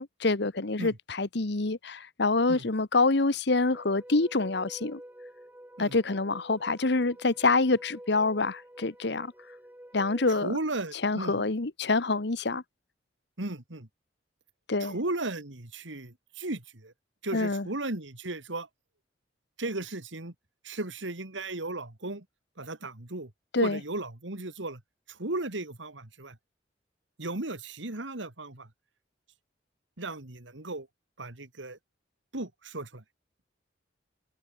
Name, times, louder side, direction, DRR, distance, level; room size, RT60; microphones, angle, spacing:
voice 1, 0.0-5.0 5.8-9.3 9.9-10.5 11.0-12.6 14.7-14.9 17.3-17.7 23.5-23.8, left 3 dB, 65° left, 1.2 m, -26 dB
sound 1, 3.6-10.5, equal, 10° right, 4.8 m, -48 dB
voice 2, 10.3-11.4 13.4-13.9 14.8-16.9 17.2-18.7 19.6-20.3 20.6-22.2 22.6-23.3 23.6-24.8 25.1-26.4 27.2-28.7 30.0-30.9 31.2-31.8 32.3-33.0, right 2 dB, 90° right, 2.6 m, -35 dB
head